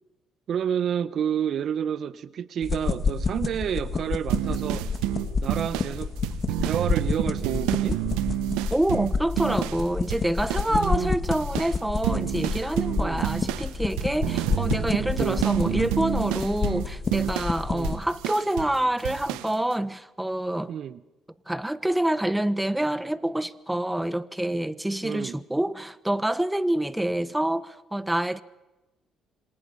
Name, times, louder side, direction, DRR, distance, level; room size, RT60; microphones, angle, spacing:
voice 1, 0.5-4.9 5.4-6.1 6.6-8.0 10.7-11.2 12.9-13.3 14.2-14.4 17.7-18.0 20.7-21.0 25.0-25.4, right 8 dB, 60° right, 1.0 m, -30 dB
sound 1, 2.6-18.0, left 5 dB, 40° left, 2.7 m, -29 dB
sound 2, 4.3-9.8 10.1-11.1 11.3-18.8 19.0-19.5, right 15 dB, 80° right, 1.2 m, -29 dB
voice 2, 8.7-20.7 21.5-28.4, right 1 dB, 10° right, 1.3 m, -27 dB
27.0 x 26.0 x 5.6 m
hypercardioid pair, 60°, 0 cm